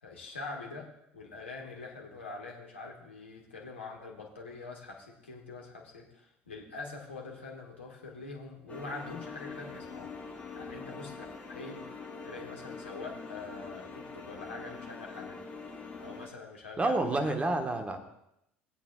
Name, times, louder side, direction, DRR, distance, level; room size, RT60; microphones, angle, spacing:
voice 1, 0.0-10.1 10.5-11.9 12.2-15.4 16.0-17.4, left 3 dB, 75° left, 0 dB, 1.6 m, -44 dB
sound 1, 8.7-16.3, left 4 dB, 20° left, 4.2 m, -44 dB
voice 2, 16.8-18.0, right 2 dB, 20° right, 5 dB, 1.3 m, -29 dB
20.0 x 8.3 x 2.3 m, 0.79 s
figure-of-eight pair, 65°, 6 cm